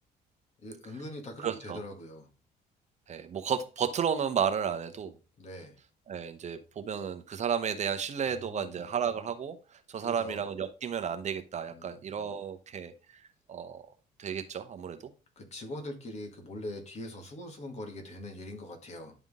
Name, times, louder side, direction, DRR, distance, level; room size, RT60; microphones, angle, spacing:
voice 1, 0.6-2.3 5.4-5.8 8.2-8.8 10.0-10.4 11.7-12.0 15.4-19.1, left 1 dB, 40° left, 4 dB, 2.0 m, -42 dB
voice 2, 1.4-1.8 3.1-5.1 6.1-9.6 9.9-13.2 13.5-13.8 14.2-15.0, right 7 dB, 45° right, 8 dB, 0.9 m, -32 dB
10.5 x 3.6 x 3.6 m, 0.33 s
cardioid pair, 110°, 17 cm